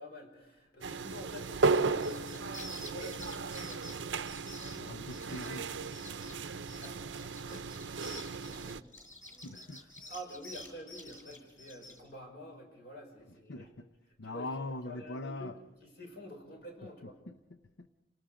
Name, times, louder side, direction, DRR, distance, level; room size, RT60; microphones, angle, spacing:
voice 1, 0.0-2.5 2.7-3.8 6.2-8.8 9.5-13.7 14.2-15.5 15.8-17.2, equal, 60° left, 3 dB, 6.0 m, -49 dB
sound 1, 0.8-8.8, right 4 dB, 75° right, 0.7 m, -35 dB
sound 2, 2.0-5.6 5.9-6.3 6.7-12.0, left 1 dB, 15° left, 6.3 m, -49 dB
voice 2, 4.7-5.7 9.4-9.8 13.5-13.9 14.2-15.5 17.3-17.9, left 2 dB, 75° left, 9 dB, 0.8 m, -42 dB
28.0 x 18.5 x 5.1 m, 1.0 s
head